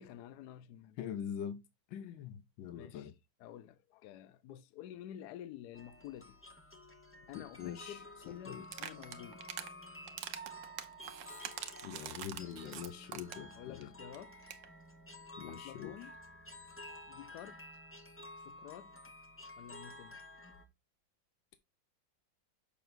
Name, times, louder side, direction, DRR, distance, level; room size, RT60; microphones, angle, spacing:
voice 1, 0.0-1.1 2.7-3.1 3.4-6.4 7.3-9.5 13.5-14.5 15.5-16.2 17.1-17.6 18.4-19.0 19.6-20.2, left 11 dB, 70° left, 1.1 m, -50 dB
voice 2, 1.0-1.6 1.9-3.1 7.3-8.0 8.3-8.6 11.8-13.9 15.4-15.9, left 9 dB, 90° left, 1.4 m, -43 dB
sound 1, 5.7-20.6, left 1 dB, 15° left, 0.4 m, -52 dB
sound 2, 8.6-9.7 10.1-13.5 13.8-13.9 14.1-14.2 14.4-14.7, right 10 dB, 80° right, 1.5 m, -44 dB
7.0 x 5.9 x 2.6 m
omnidirectional pair, 2.0 m